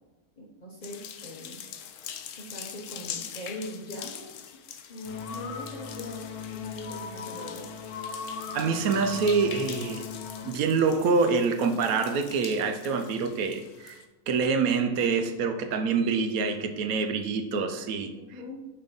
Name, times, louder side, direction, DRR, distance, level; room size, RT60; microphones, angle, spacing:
voice 1, 0.4-1.6 2.4-4.3 4.9-7.7 18.3-18.6, left 1 dB, 35° left, -3 dB, 0.7 m, -41 dB
sound 1, 0.8-14.1, left 9 dB, 70° left, 0.8 m, -43 dB
sound 2, 5.1-10.5, left 5 dB, 85° left, 1.2 m, -39 dB
voice 2, 8.5-10.0 10.4-14.0 14.3-18.1, right 5 dB, 75° right, 7 dB, 1.0 m, -26 dB
5.6 x 3.3 x 5.3 m, 1.1 s
omnidirectional pair, 1.6 m